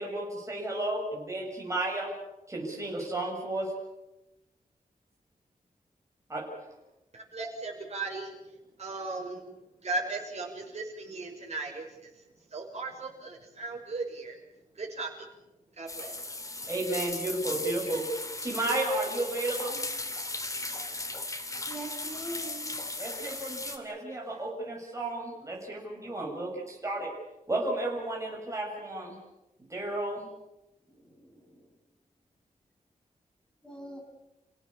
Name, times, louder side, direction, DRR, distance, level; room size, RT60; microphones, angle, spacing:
voice 1, 0.0-2.1 2.5-3.7 6.3-6.5 16.7-18.1 18.4-19.8 23.0-27.1 27.5-29.2 29.7-30.3, right 2 dB, 20° right, -2 dB, 7.0 m, -33 dB
voice 2, 7.1-8.3 8.8-9.4 9.8-12.2 12.5-14.4 14.7-15.3 15.7-16.1, right 3 dB, 50° right, 1 dB, 6.3 m, -37 dB
sound 1, 15.9-23.8, left 2 dB, 25° left, 2.6 m, -37 dB
voice 3, 21.7-22.8 31.0-31.6 33.6-34.0, right 1 dB, 5° left, 0 dB, 7.5 m, -42 dB
29.5 x 17.0 x 8.6 m, 0.95 s
wide cardioid pair, 155°, 14 cm